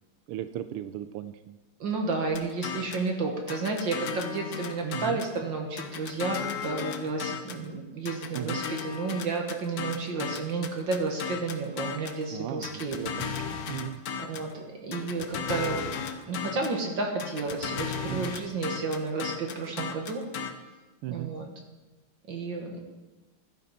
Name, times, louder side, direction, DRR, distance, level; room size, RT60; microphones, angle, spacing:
voice 1, 0.3-1.6 4.8-5.2 8.3-8.6 12.3-14.0 18.1-18.3 21.0-21.4, right 12 dB, 90° right, 11 dB, 1.5 m, -36 dB
voice 2, 1.8-13.0 14.2-15.9 16.3-20.2 21.1-21.5 22.3-22.8, right 3 dB, 60° right, 2 dB, 2.1 m, -31 dB
sound 1, 2.3-3.1 3.5-5.4 5.8-7.7 8.1-12.2 12.6-14.5 14.9-16.8 17.2-20.5, left 6 dB, 55° left, 1.1 m, -35 dB
15.5 x 11.5 x 4.2 m, 1.2 s
omnidirectional pair, 2.4 m